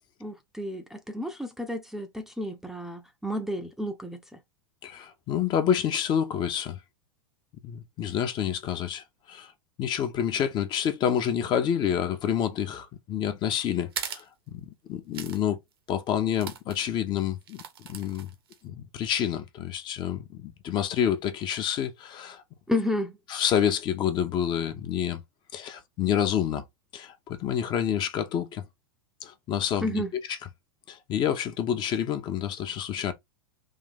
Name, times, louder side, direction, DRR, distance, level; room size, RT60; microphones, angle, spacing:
voice 1, 0.2-4.4 22.7-23.2 29.8-30.1, left 1 dB, 5° right, 0.7 m, -31 dB
voice 2, 4.8-6.8 7.6-9.5 9.8-15.6 15.9-18.3 18.6-22.4 23.3-25.2 25.5-26.6 26.9-28.6 29.2-30.0 30.3-30.4 30.9-33.1, left 9 dB, 40° left, 1.0 m, -28 dB
sound 1, 13.9-14.3 15.1-15.4 15.7-15.8 16.4-16.8 17.4-18.6, right 8 dB, 75° right, 1.0 m, -38 dB
3.8 x 2.7 x 3.6 m
hypercardioid pair, 100°, 13 cm